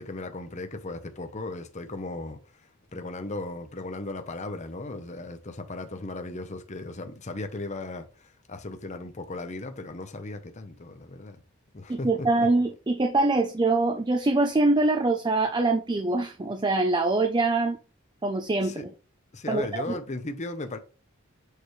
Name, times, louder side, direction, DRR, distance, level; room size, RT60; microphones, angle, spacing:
voice 1, 0.0-11.4 11.7-12.5 18.6-18.8 19.3-20.8, left 2 dB, 35° left, 0.7 m, -37 dB
voice 2, 11.9-17.8 18.2-18.9 19.5-19.6, right 2 dB, 20° right, 0.4 m, -24 dB
6.5 x 4.9 x 3.1 m
head